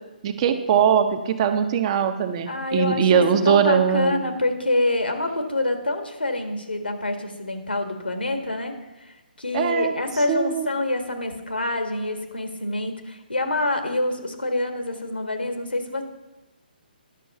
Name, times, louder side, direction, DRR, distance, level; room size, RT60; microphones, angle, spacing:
voice 1, 0.2-4.2 9.5-9.9 10.3-10.7, right 7 dB, 35° right, 8 dB, 0.7 m, -21 dB
voice 2, 2.5-8.7 9.0-16.0, left 2 dB, 90° left, 6 dB, 1.6 m, -26 dB
11.0 x 6.2 x 5.7 m, 1.1 s
figure-of-eight pair, 140°, 5 cm